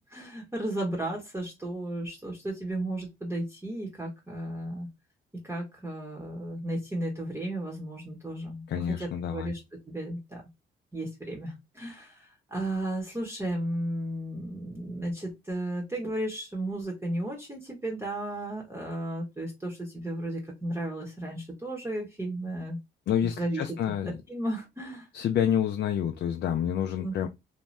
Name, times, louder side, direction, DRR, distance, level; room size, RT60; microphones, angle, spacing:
voice 1, 0.1-4.9 5.4-9.6 9.9-10.4 10.9-22.8 23.4-23.8 24.1-25.1 27.0-27.3, right 1 dB, 10° right, 0.9 m, -34 dB
voice 2, 8.7-9.5 23.1-24.2 25.1-27.3, left 9 dB, 60° left, 0.4 m, -28 dB
2.6 x 2.1 x 3.1 m
cardioid pair, 90°, 20 cm